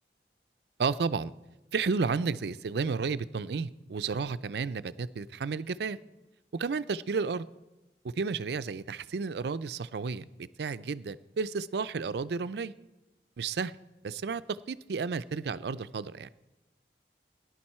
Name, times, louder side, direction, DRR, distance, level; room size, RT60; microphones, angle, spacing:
voice 1, 0.8-1.3 1.7-6.0 6.5-7.5 8.2-12.7 13.4-13.7 14.0-16.3, right 5 dB, 65° right, 15 dB, 0.4 m, -32 dB
17.5 x 11.0 x 4.3 m, 1.1 s
head